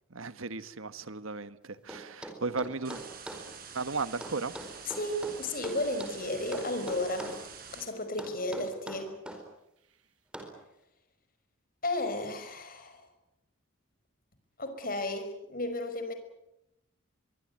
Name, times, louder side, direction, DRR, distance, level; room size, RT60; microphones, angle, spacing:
voice 1, 0.1-3.0 3.7-4.5, right 4 dB, 90° right, 13 dB, 1.5 m, -35 dB
sound 1, 1.9-3.5 4.2-6.2 6.5-7.4 8.2-9.4 10.3-10.6, right 1 dB, 5° right, 4.6 m, -42 dB
sound 2, 2.8-7.8, right 6 dB, 45° right, 6.2 m, -47 dB
voice 2, 5.0-7.4 7.7-9.2 11.8-13.1 14.6-16.1, left 1 dB, 45° left, 8 dB, 5.5 m, -33 dB
24.5 x 23.5 x 9.5 m, 0.85 s
head